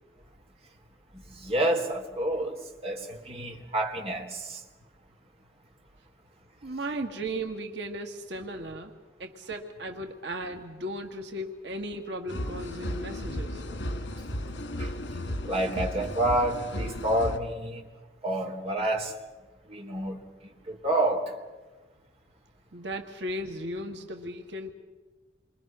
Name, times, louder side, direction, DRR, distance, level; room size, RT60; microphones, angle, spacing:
voice 1, 1.1-2.6 2.8-4.6 14.8-14.9 15.5-17.8 18.2-19.1 19.7-21.3, right 1 dB, 35° right, 0 dB, 4.0 m, -29 dB
voice 2, 6.6-8.9 9.2-13.6 22.7-24.7, right 1 dB, 75° right, 4 dB, 1.8 m, -36 dB
sound 1, 12.3-17.4, left 1 dB, 90° left, 2.1 m, -34 dB
29.0 x 24.5 x 6.3 m, 1.3 s
head